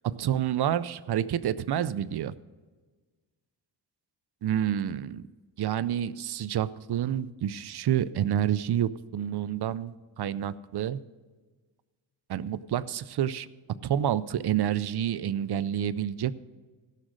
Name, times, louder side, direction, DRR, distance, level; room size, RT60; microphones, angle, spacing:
voice 1, 0.2-2.3 4.4-5.2 5.6-11.0 12.3-13.5 13.8-16.4, right 10 dB, 60° right, 17 dB, 0.6 m, -28 dB
15.5 x 6.3 x 6.3 m, 1.3 s
cardioid pair, 70°, 45 cm